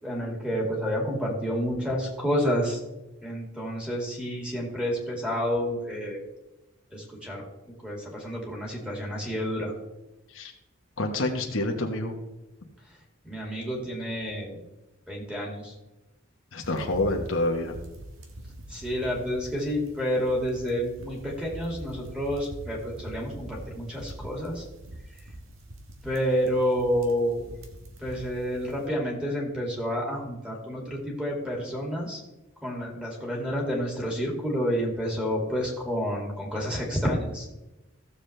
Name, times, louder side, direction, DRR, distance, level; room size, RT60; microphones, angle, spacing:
voice 1, 0.0-2.8 3.2-6.2 6.9-9.7 13.2-14.6 15.1-15.7 18.7-24.6 26.0-27.5 28.0-32.2 32.6-37.5, equal, 5° right, -1 dB, 2.4 m, -29 dB
voice 2, 11.0-12.1 16.5-17.8, left 2 dB, 70° left, 3 dB, 1.2 m, -27 dB
sound 1, 16.6-28.9, right 1 dB, 80° right, 1.5 m, -44 dB
15.5 x 7.0 x 3.3 m, 1.0 s
head